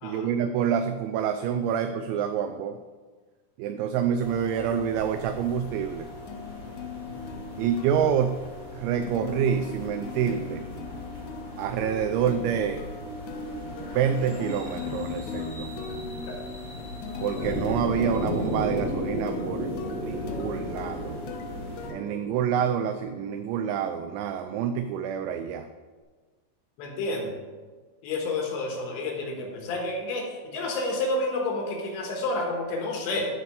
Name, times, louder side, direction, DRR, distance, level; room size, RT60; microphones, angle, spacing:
voice 1, 0.0-2.8 3.6-6.1 7.6-8.4 8.7-10.6 11.6-12.8 14.0-15.7 17.2-21.2 21.9-25.7, right 8 dB, 85° right, 8 dB, 2.6 m, -27 dB
sound 1, 4.2-21.9, left 1 dB, 30° left, 1.6 m, -40 dB
sound 2, 6.3-23.0, left 6 dB, 90° left, 3.2 m, -40 dB
voice 2, 7.1-7.4 16.3-16.4 26.8-27.3 28.0-33.2, left 2 dB, 70° left, 1 dB, 3.4 m, -30 dB
sound 3, 17.3-23.4, equal, 70° right, 5.5 m, -33 dB
13.0 x 4.3 x 6.7 m, 1.4 s
omnidirectional pair, 5.7 m